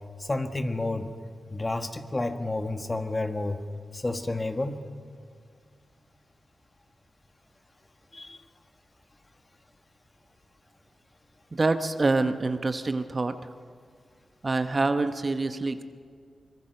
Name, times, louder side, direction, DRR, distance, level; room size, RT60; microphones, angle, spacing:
voice 1, 0.2-1.1 1.5-3.6 3.9-4.8 8.1-8.4, left 2 dB, 30° left, 7 dB, 1.6 m, -30 dB
voice 2, 11.5-13.4 14.4-15.8, right 3 dB, 40° right, 9 dB, 1.1 m, -26 dB
23.5 x 21.0 x 6.7 m, 2.1 s
cardioid pair, 60°, 0 cm